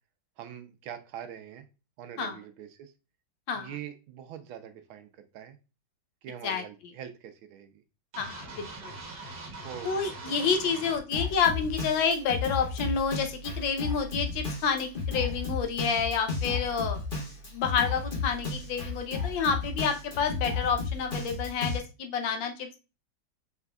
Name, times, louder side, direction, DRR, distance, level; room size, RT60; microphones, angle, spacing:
voice 1, 0.4-1.6 2.0-2.9 3.5-5.6 6.2-7.8 9.6-10.5, right 9 dB, 85° right, 8 dB, 1.5 m, -43 dB
sound 1, 8.1-11.0, right 2 dB, 50° right, 1.6 m, -42 dB
voice 2, 8.2-9.0 9.8-17.0 17.5-22.8, left 6 dB, 70° left, 6 dB, 1.3 m, -29 dB
Drum kit, 11.1-21.8, left 4 dB, 30° left, 1.0 m, -33 dB
4.9 x 3.5 x 2.2 m, 0.30 s
omnidirectional pair, 2.3 m